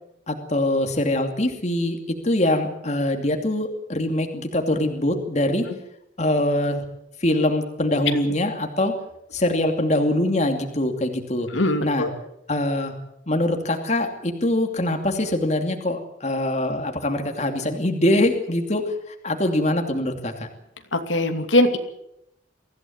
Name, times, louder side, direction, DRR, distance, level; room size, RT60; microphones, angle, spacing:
voice 1, 0.3-2.0 2.2-5.7 6.2-6.8 7.2-8.9 9.3-11.5 11.8-12.1 12.5-12.9 13.3-18.8 19.2-20.3, left 1 dB, 35° left, 5 dB, 2.7 m, -23 dB
voice 2, 11.5-12.1 20.9-21.8, left 1 dB, 85° left, 5 dB, 2.7 m, -21 dB
24.0 x 15.5 x 9.3 m, 0.79 s
head